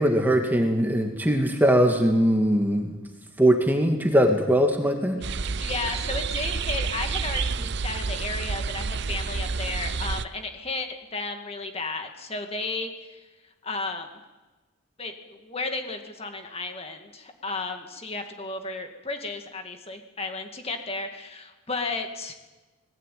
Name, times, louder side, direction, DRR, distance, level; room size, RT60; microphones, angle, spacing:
voice 1, 0.0-2.9 3.4-5.2, equal, 10° right, 4 dB, 2.0 m, -21 dB
sound 1, 5.2-10.2, right 5 dB, 55° right, 0.6 m, -29 dB
voice 2, 5.6-13.2 13.6-14.1 15.0-22.3, left 3 dB, 30° left, 5 dB, 2.0 m, -33 dB
20.0 x 17.0 x 9.3 m, 1.2 s
head